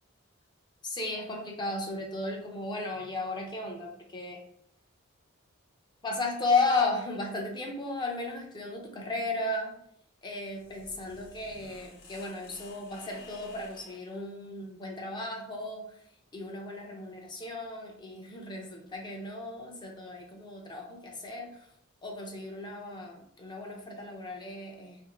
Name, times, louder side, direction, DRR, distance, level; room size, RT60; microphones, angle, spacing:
voice 1, 0.8-4.4 6.0-9.7 10.2-15.9 16.3-21.7 22.0-25.0, left 3 dB, 20° left, 1 dB, 0.4 m, -34 dB
sound 1, 10.3-14.1, left 3 dB, 75° left, 0.7 m, -53 dB
2.5 x 2.4 x 2.9 m, 0.69 s
head